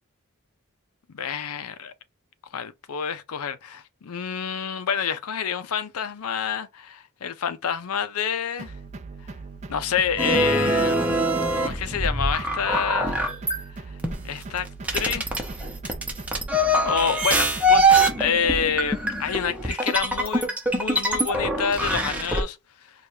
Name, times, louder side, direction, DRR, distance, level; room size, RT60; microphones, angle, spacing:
voice 1, 1.1-1.9 2.5-8.7 9.7-11.2 11.6-13.2 14.2-14.7 14.9-15.4 16.9-17.8 18.2-22.6, left 7 dB, 90° left, 0.5 m, -28 dB
sound 1, 8.6-18.3, right 3 dB, 30° right, 0.4 m, -40 dB
sound 2, 10.2-13.6 14.0-22.4, right 1 dB, 5° right, 0.7 m, -23 dB
4.7 x 2.3 x 2.7 m
head